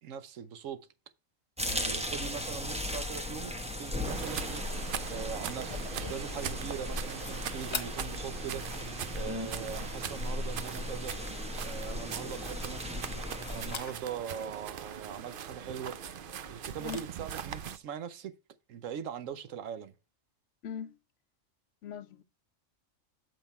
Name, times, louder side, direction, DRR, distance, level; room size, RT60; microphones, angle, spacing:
voice 1, 0.0-0.8 1.6-4.6 5.1-8.7 9.1-11.1 11.6-13.0 13.5-16.0 16.5-18.3 18.7-19.9, right 8 dB, 80° right, 1.1 m, -41 dB
sound 1, 1.6-13.8, left 1 dB, 5° right, 0.7 m, -37 dB
sound 2, 4.0-17.8, right 8 dB, 60° right, 0.6 m, -41 dB
sound 3, 5.6-17.0, left 4 dB, 30° left, 0.6 m, -47 dB
voice 2, 20.6-21.0 21.8-22.2, left 8 dB, 70° left, 1.0 m, -39 dB
7.8 x 5.0 x 4.3 m
omnidirectional pair, 1.4 m